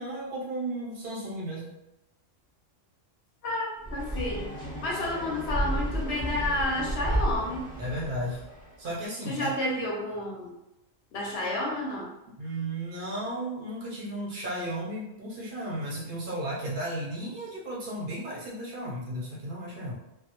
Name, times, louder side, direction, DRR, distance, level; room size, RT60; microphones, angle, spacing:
voice 1, 0.0-1.7 7.8-8.4 8.8-9.5 12.4-19.9, right 1 dB, 55° right, -5 dB, 0.6 m, -34 dB
voice 2, 3.4-4.5 4.8-7.6 9.3-10.5 11.1-12.1, left 1 dB, 65° left, -3 dB, 0.8 m, -30 dB
sound 1, 3.8-8.7, equal, 20° left, 0.5 m, -32 dB
2.2 x 2.0 x 2.8 m, 0.90 s
omnidirectional pair, 1.3 m